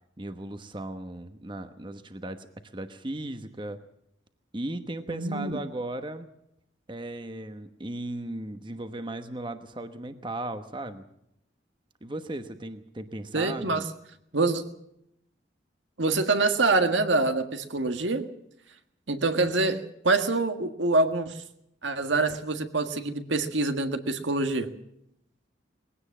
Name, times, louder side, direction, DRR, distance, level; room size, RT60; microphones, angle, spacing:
voice 1, 0.2-2.5 2.7-3.8 4.5-6.3 6.9-11.1 12.0-13.9, right 1 dB, 25° right, 9 dB, 1.1 m, -36 dB
voice 2, 5.1-5.6 13.3-13.8 14.3-14.6 16.0-18.3 19.1-21.4 21.8-24.7, right 3 dB, 75° right, 8 dB, 1.7 m, -25 dB
21.0 x 17.0 x 7.4 m, 0.77 s
head